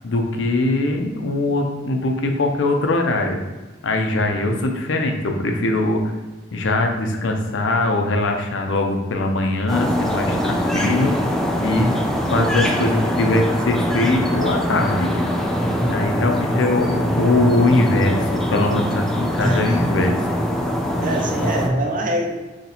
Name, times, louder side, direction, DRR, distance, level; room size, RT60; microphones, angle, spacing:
voice 1, 0.0-3.4 3.8-6.0 6.5-11.1 11.6-11.9 12.3-15.1 15.9-20.2, left 2 dB, 75° left, 3 dB, 0.5 m, -21 dB
sound 1, 9.7-21.7, equal, ahead, 0.3 m, -23 dB
voice 2, 15.7-16.1 19.4-19.9 21.0-22.3, right 1 dB, 45° right, 0 dB, 0.6 m, -25 dB
2.9 x 2.7 x 4.1 m, 1.2 s
head